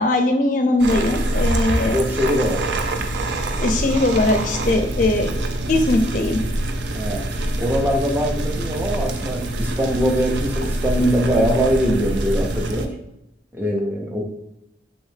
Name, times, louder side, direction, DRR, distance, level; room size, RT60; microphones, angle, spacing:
voice 1, 0.0-2.0 3.6-5.3 5.7-6.4, left 2 dB, 45° left, 4 dB, 0.4 m, -20 dB
sound 1, 0.8-12.9, right 1 dB, 80° right, 0.4 m, -25 dB
voice 2, 1.9-2.7 6.9-7.3 7.6-12.9 13.5-14.2, equal, 10° right, 0 dB, 0.5 m, -22 dB
3.3 x 3.2 x 3.2 m, 0.84 s
head